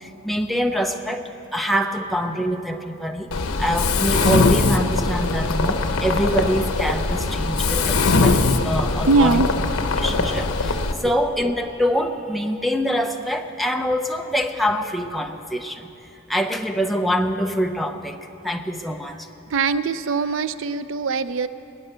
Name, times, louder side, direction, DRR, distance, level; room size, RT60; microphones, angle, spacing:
voice 1, 0.0-3.3 3.6-9.4 10.0-15.9 16.3-18.2 18.4-19.3, equal, ahead, 3 dB, 0.7 m, -25 dB
Mechanisms, 3.3-10.9, left 3 dB, 85° left, 0.9 m, -21 dB
voice 2, 9.1-9.5 11.0-11.1 19.5-21.5, right 3 dB, 65° right, 13 dB, 0.4 m, -22 dB
21.5 x 9.0 x 6.8 m, 3.0 s
head